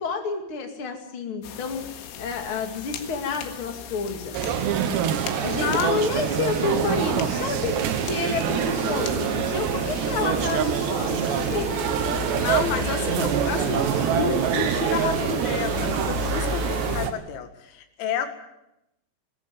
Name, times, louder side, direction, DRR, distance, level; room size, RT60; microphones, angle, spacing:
voice 1, 0.0-1.8 2.2-4.3 5.4-11.9, left 4 dB, 40° left, 4 dB, 2.1 m, -29 dB
sound 1, 1.4-17.1, left 8 dB, 85° left, 4.4 m, -36 dB
sound 2, 4.3-17.1, right 9 dB, 70° right, 3.1 m, -25 dB
voice 2, 5.6-6.0 12.4-18.3, left 8 dB, 70° left, 7 dB, 4.1 m, -30 dB
sound 3, 7.0-15.5, equal, 20° right, 2.2 m, -38 dB
20.0 x 15.0 x 9.4 m, 0.87 s
omnidirectional pair, 5.9 m